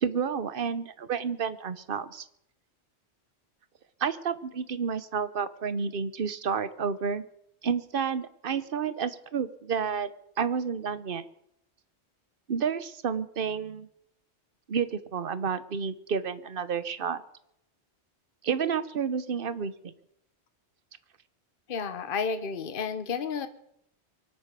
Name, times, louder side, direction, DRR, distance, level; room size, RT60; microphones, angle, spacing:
voice 1, 0.0-2.2 4.0-7.2 7.6-10.1 10.4-11.2 12.5-13.9 14.7-17.2 18.4-19.9, right 6 dB, 55° right, 14 dB, 1.0 m, -30 dB
voice 2, 21.7-23.5, left 5 dB, 55° left, 9 dB, 1.1 m, -31 dB
24.0 x 8.3 x 6.8 m, 0.76 s
omnidirectional pair, 1.1 m